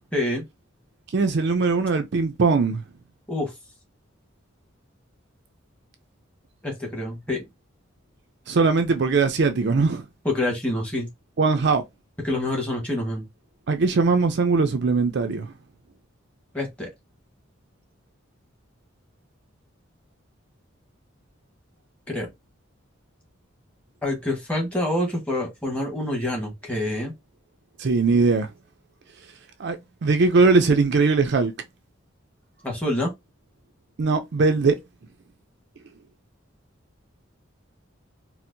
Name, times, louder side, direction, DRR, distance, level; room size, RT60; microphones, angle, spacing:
voice 1, 0.1-0.4 3.3-3.5 6.6-7.4 10.2-11.1 12.2-13.2 16.5-16.9 22.1-22.3 24.0-27.1 32.6-33.1, left 1 dB, 5° left, 1.3 m, -26 dB
voice 2, 1.1-2.8 8.5-10.0 11.4-11.8 13.7-15.5 27.8-28.5 29.6-29.8 30.0-31.5 34.0-34.8, right 4 dB, 55° right, 0.4 m, -20 dB
4.3 x 2.0 x 2.6 m
head